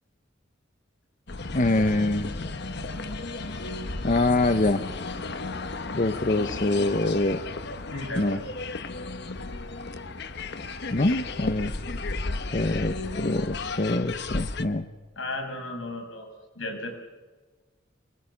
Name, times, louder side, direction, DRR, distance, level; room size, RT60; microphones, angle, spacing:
sound 1, 1.3-14.6, left 3 dB, 60° left, 1.1 m, -34 dB
voice 1, 1.5-2.3 4.0-4.8 5.9-7.4 8.2-8.4 10.9-11.8 12.5-14.9, left 2 dB, 40° left, 9 dB, 0.9 m, -24 dB
voice 2, 7.9-8.5 15.2-16.3 16.5-16.9, left 2 dB, 85° left, 3 dB, 6.5 m, -34 dB
24.0 x 21.5 x 7.2 m, 1.3 s
head